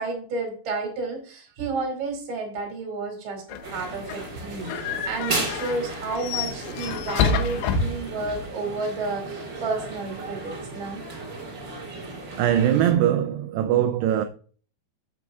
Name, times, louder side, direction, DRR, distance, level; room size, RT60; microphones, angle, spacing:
voice 1, 0.0-11.0, right 3 dB, 35° right, 2.5 m, -31 dB
sound 1, 3.5-8.5, left 6 dB, 80° left, 2.9 m, -29 dB
sound 2, 3.6-12.9, right 3 dB, 55° right, 1.2 m, -35 dB
voice 2, 12.4-14.3, right 10 dB, 85° right, 2.4 m, -21 dB
8.9 x 7.8 x 2.4 m
omnidirectional pair, 5.2 m